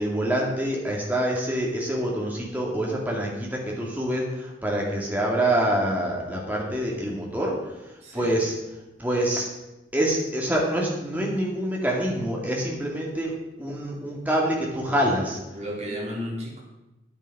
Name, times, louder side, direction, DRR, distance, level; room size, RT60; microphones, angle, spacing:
voice 1, 0.0-7.6 8.1-8.5 9.0-9.5 9.9-13.3 13.6-15.4, right 1 dB, 10° right, -2 dB, 2.2 m, -26 dB
voice 2, 8.0-8.4 15.5-16.6, equal, 40° right, -6 dB, 4.1 m, -33 dB
9.5 x 9.3 x 5.4 m, 1.0 s
head